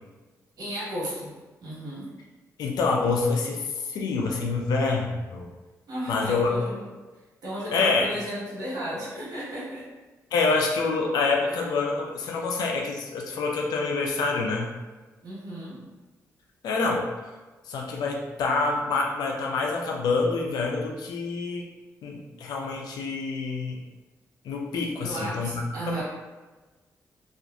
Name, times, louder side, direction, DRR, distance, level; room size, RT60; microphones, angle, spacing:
voice 1, 0.6-1.3 1.6-2.1 5.9-6.8 7.4-9.8 15.2-15.8 25.0-26.0, equal, 70° right, -7 dB, 1.1 m, -34 dB
voice 2, 2.6-5.5 6.1-6.6 7.7-8.1 10.3-14.7 16.6-17.0 17.6-21.7 22.0-23.8 24.4-26.0, left 4 dB, 80° left, 0 dB, 0.4 m, -26 dB
2.5 x 2.5 x 2.3 m, 1.2 s
cardioid pair, 60°, 7 cm